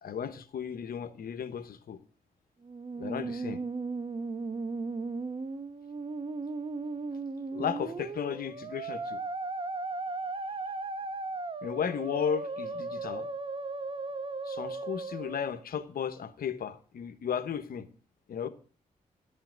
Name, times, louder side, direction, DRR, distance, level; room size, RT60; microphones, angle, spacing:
voice 1, 0.0-2.0 3.0-3.6 7.5-9.2 11.6-13.3 14.4-17.9 18.3-18.5, left 7 dB, 80° left, 1.0 m, -34 dB
Musical instrument, 2.6-15.6, right 3 dB, 35° right, 1.0 m, -36 dB
11.5 x 5.7 x 7.8 m
cardioid pair, 65°, 15 cm